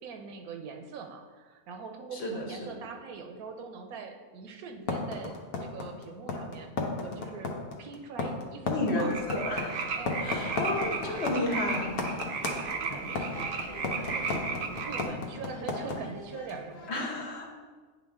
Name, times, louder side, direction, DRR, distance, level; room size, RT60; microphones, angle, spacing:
voice 1, 0.0-6.7 7.0-7.5 7.8-9.2 9.9-10.8 11.0-17.1, right 5 dB, 85° right, 4 dB, 1.2 m, -43 dB
voice 2, 2.2-2.8 8.7-9.9 10.2-12.0 16.9-17.5, left 2 dB, 50° left, 0 dB, 1.2 m, -32 dB
sound 1, 4.9-15.9, left 4 dB, 90° left, 1.3 m, -32 dB
sound 2, 9.1-15.1, right 5 dB, 60° right, 0.7 m, -35 dB
sound 3, 10.4-16.9, left 4 dB, 70° left, 0.3 m, -47 dB
9.2 x 3.5 x 3.6 m, 1.4 s
omnidirectional pair, 1.5 m